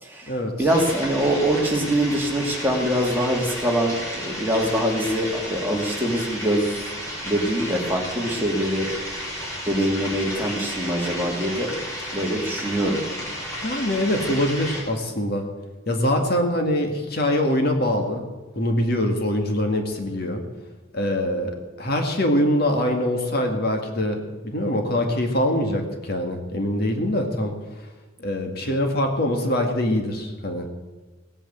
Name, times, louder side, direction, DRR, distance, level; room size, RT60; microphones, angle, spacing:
voice 1, 0.0-6.8 7.2-8.9 9.7-11.7 12.1-13.0, right 1 dB, 10° right, -1 dB, 2.6 m, -24 dB
sound 1, 0.7-14.8, equal, 15° left, 5.4 m, -33 dB
voice 2, 13.6-15.4 15.9-18.2 18.6-20.4 20.9-27.5 28.2-30.7, left 1 dB, 50° left, 3 dB, 2.1 m, -23 dB
18.0 x 8.9 x 8.2 m, 1.3 s
head